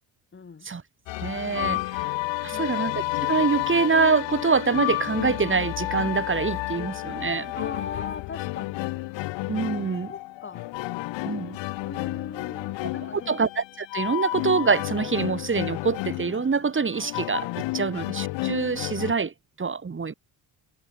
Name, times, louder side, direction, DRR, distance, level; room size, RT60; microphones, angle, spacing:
voice 1, 0.3-0.7 2.4-2.8 7.5-8.9 10.1-10.7 11.8-13.4 17.8-18.0, left 5 dB, 25° left, 5.8 m, -39 dB
sound 1, 1.1-19.1, left 20 dB, 90° left, 1.7 m, -31 dB
voice 2, 1.2-2.2 2.4-7.5 9.5-10.1 11.2-11.6 13.1-17.5 17.7-20.1, right 5 dB, 30° right, 4.5 m, -25 dB
cardioid pair, 110°, 42 cm